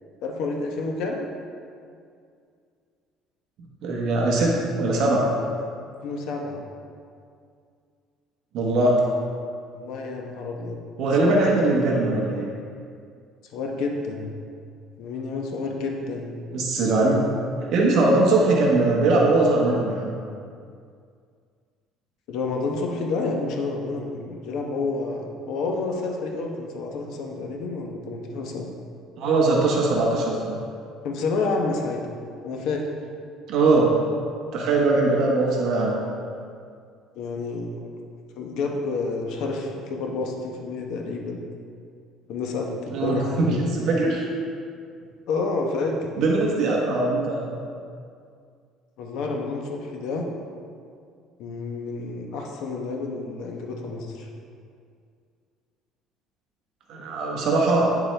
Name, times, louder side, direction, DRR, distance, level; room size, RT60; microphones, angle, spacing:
voice 1, 0.2-1.3 6.0-6.6 9.7-10.8 11.2-11.4 13.5-14.3 15.0-16.4 22.3-28.7 29.8-29.9 31.0-32.0 32.4-32.9 37.1-37.9 38.4-41.4 42.3-43.6 45.3-46.1 49.0-50.3 51.4-54.3, left 3 dB, 60° left, 1 dB, 1.0 m, -29 dB
voice 2, 3.8-5.3 8.5-9.0 11.0-12.5 16.5-17.2 17.7-20.1 29.2-30.6 33.5-33.9 34.5-36.0 42.9-44.3 46.2-47.6 56.9-57.9, right 2 dB, 50° right, -2 dB, 1.1 m, -21 dB
9.4 x 7.0 x 3.3 m, 2.3 s
cardioid pair, 180°, 0 cm